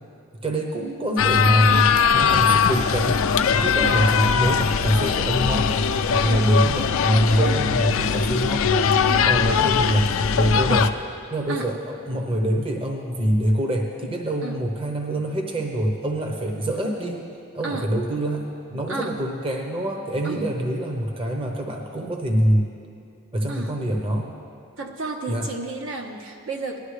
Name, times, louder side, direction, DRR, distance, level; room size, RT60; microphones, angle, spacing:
voice 1, 0.4-3.3 3.5-5.8 6.1-8.7 9.2-10.9 11.3-17.3 17.5-22.6 23.3-24.3 25.3-25.5, right 1 dB, 25° right, 2 dB, 0.8 m, -25 dB
sound 1, 1.2-10.9, left 6 dB, 75° left, 0.4 m, -20 dB
voice 2, 18.9-19.2 20.2-20.4 23.5-23.7 24.8-26.8, right 3 dB, 70° right, 2 dB, 1.1 m, -32 dB
19.0 x 11.5 x 3.3 m, 2.5 s
head